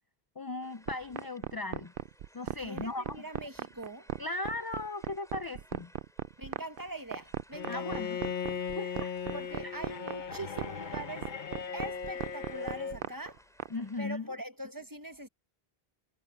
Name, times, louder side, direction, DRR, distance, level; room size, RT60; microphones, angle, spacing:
voice 1, 0.4-1.9 2.3-3.2 4.2-5.9 7.7-8.2 8.8-9.3 9.6-9.7 13.7-14.3, left 2 dB, 35° left, 0.3 m, -37 dB
sound 1, 0.6-14.0, equal, 5° left, 3.5 m, -60 dB
sound 2, 0.9-13.7, right 11 dB, 65° right, 0.7 m, -36 dB
voice 2, 2.6-4.1 6.4-8.1 9.3-11.3 11.7-13.4 14.0-15.3, right 1 dB, 20° right, 1.0 m, -42 dB
Bowed string instrument, 7.5-13.0, left 7 dB, 50° left, 0.9 m, -38 dB
omnidirectional pair, 1.1 m